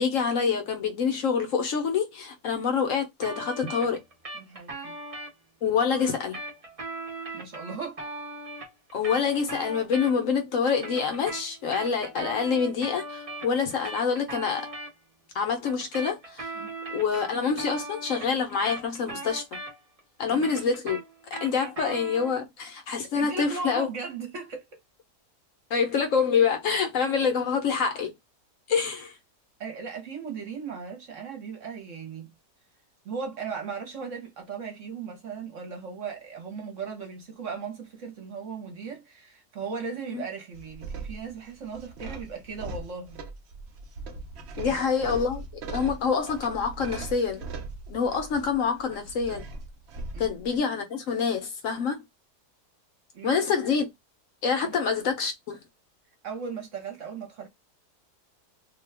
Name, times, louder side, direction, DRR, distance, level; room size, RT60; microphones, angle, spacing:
voice 1, 0.0-4.0 5.6-6.4 8.9-14.7 15.3-16.5 16.9-19.6 20.2-21.0 21.3-23.9 25.7-28.1 28.7-29.1 40.1-40.2 44.6-45.4 45.7-47.4 47.9-49.5 50.2-52.0 53.2-53.9 54.4-55.6, left 6 dB, 60° left, 0.9 m, -26 dB
sound 1, 3.2-5.3 6.0-10.4 10.7-14.9 15.6-20.0 20.3-22.4, right 2 dB, 35° right, 0.6 m, -39 dB
voice 2, 4.3-5.0 7.3-8.0 16.5-16.7 20.3-20.5 23.1-24.7 29.6-32.3 33.0-43.2 44.6-44.8 50.1-50.3 53.1-53.4 54.6-54.8 56.2-57.5, right 5 dB, 55° right, 1.1 m, -37 dB
sound 2, 40.5-50.6, right 3 dB, 75° right, 0.6 m, -40 dB
2.7 x 2.3 x 3.3 m
omnidirectional pair, 1.8 m